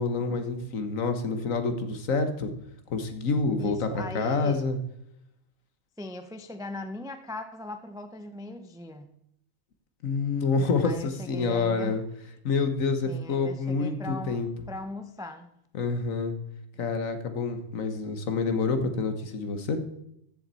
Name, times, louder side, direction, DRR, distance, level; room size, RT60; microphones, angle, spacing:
voice 1, 0.0-2.5 2.9-4.8 10.0-12.0 12.4-14.5 15.7-16.3 16.8-19.8, left 4 dB, 60° left, 8 dB, 1.5 m, -27 dB
voice 2, 3.6-4.6 6.0-9.1 10.8-12.0 13.0-14.4 14.7-15.5, left 2 dB, 5° right, 8 dB, 0.3 m, -39 dB
14.0 x 7.5 x 4.1 m, 0.75 s
omnidirectional pair, 1.6 m